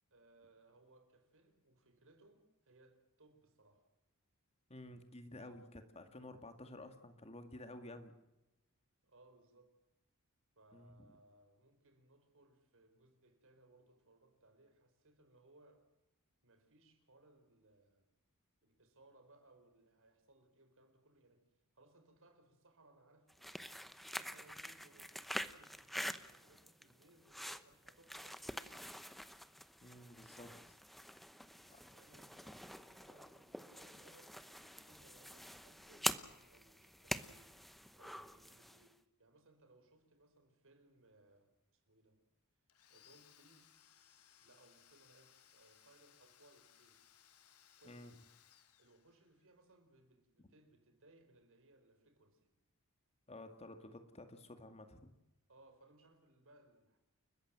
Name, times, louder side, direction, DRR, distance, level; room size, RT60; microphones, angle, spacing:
voice 1, 0.1-3.9 5.3-5.7 9.0-9.8 10.6-15.9 16.4-18.1 18.6-23.8 24.1-29.0 31.4-37.6 38.0-42.2 42.9-43.8 44.4-47.1 47.8-48.3 48.8-52.5 55.5-57.0, right 2 dB, 65° right, 4.6 m, -67 dB
voice 2, 4.7-8.1 10.7-11.2 29.8-30.6 31.7-31.8 47.8-48.1 53.3-55.1, left 1 dB, 30° left, 2.2 m, -52 dB
sound 1, 23.3-38.9, equal, ahead, 0.9 m, -46 dB
Domestic sounds home sounds, 42.7-49.5, left 10 dB, 85° left, 1.9 m, -66 dB
30.0 x 14.5 x 7.6 m
head